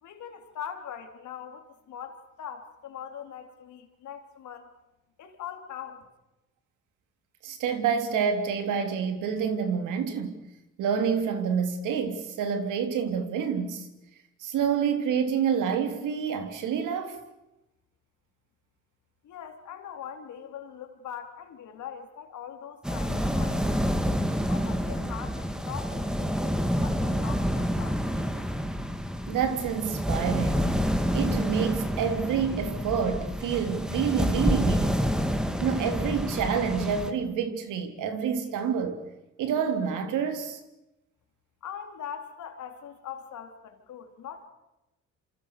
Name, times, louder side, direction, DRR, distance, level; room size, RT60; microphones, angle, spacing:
voice 1, 0.0-4.7 5.2-6.1 19.2-23.9 24.5-28.5 41.6-44.5, left 8 dB, 75° left, 5 dB, 3.9 m, -42 dB
voice 2, 7.4-10.4 10.8-13.9 14.4-17.2 29.3-30.8 31.1-35.2 35.6-39.0 39.4-40.6, right 7 dB, 90° right, 7 dB, 3.4 m, -28 dB
sound 1, 22.8-37.1, equal, ahead, 2.5 m, -28 dB
28.0 x 27.0 x 6.8 m, 0.97 s
cardioid pair, 90°, 30 cm